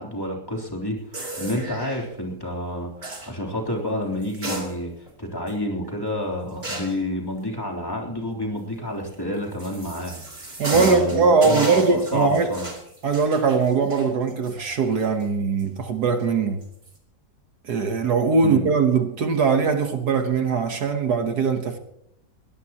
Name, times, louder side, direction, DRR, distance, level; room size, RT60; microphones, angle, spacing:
voice 1, 0.0-12.7 18.4-18.6, left 1 dB, 10° left, 3.4 m, -29 dB
sound 1, 1.1-2.0 3.0-3.3 4.2-5.1 5.5-5.6 6.6-7.0 9.1-15.2 15.6-15.7 16.6-16.9, right 1 dB, 30° right, 3.4 m, -33 dB
voice 2, 10.6-12.5 13.0-16.6 17.7-21.8, right 5 dB, 60° right, 1.7 m, -21 dB
22.0 x 17.5 x 3.0 m
omnidirectional pair, 1.9 m